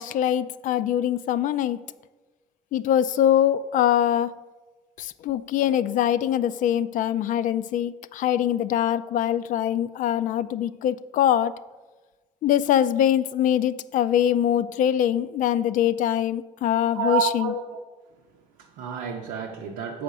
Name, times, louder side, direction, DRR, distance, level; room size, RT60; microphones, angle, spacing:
voice 1, 0.0-1.8 2.7-4.4 5.0-11.5 12.4-17.5, left 10 dB, 65° left, 15 dB, 0.4 m, -23 dB
voice 2, 16.9-17.8 18.6-20.0, right 6 dB, 90° right, 1 dB, 0.7 m, -29 dB
6.3 x 5.0 x 6.6 m, 1.2 s
supercardioid pair, 80°, 15 cm